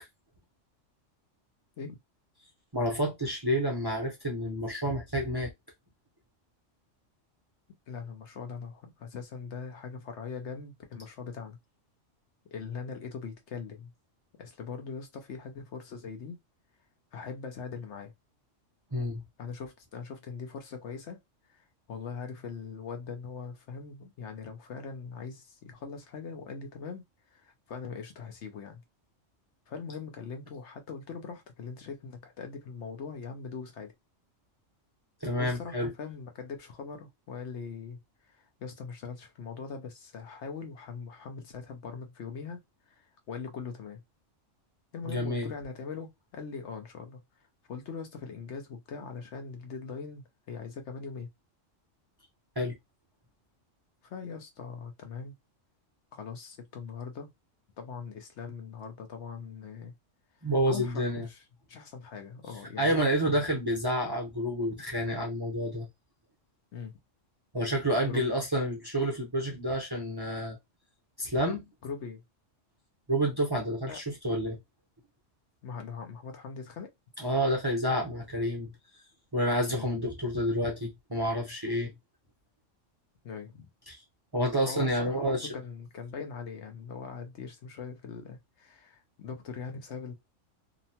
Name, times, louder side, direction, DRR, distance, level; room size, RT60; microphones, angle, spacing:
voice 1, 2.7-5.5 18.9-19.2 35.2-35.9 45.1-45.5 52.6-52.8 60.4-61.3 62.8-65.9 67.5-70.6 71.2-71.7 73.1-74.6 77.2-78.7 79.3-81.9 83.9-84.0 84.3-85.5, equal, 25° right, 0.6 m, -29 dB
voice 2, 7.9-11.6 12.5-13.9 14.4-16.4 17.1-18.1 19.4-21.2 21.5-27.0 27.3-28.8 29.7-33.9 35.4-38.0 38.3-42.6 42.9-44.0 44.9-47.2 47.7-51.3 54.0-55.3 56.1-57.3 57.8-59.9 60.4-61.4 61.7-63.4 66.7-66.9 68.0-68.3 71.8-72.2 73.9-74.0 75.6-76.9 79.7-79.9 83.2-83.7 84.7-90.1, left 5 dB, 70° left, 1.0 m, -41 dB
2.9 x 2.2 x 2.7 m
omnidirectional pair, 1.3 m